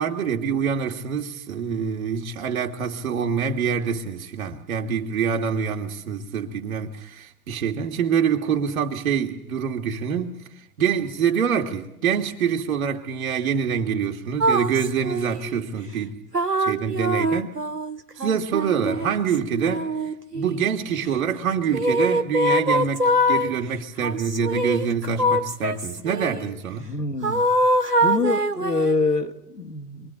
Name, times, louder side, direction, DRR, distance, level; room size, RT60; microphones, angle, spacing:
voice 1, 0.0-16.2 16.6-17.6 18.2-19.9 20.3-26.9, right 7 dB, 60° right, 2.5 m, -25 dB
sound 1, 14.4-15.6 16.3-20.7 21.7-23.5 24.0-26.4 27.2-29.0, equal, 90° right, 1.9 m, -23 dB
voice 2, 26.8-27.4 28.0-30.1, left 3 dB, 85° left, 2.7 m, -25 dB
28.5 x 23.5 x 8.9 m
figure-of-eight pair, 95°, 46 cm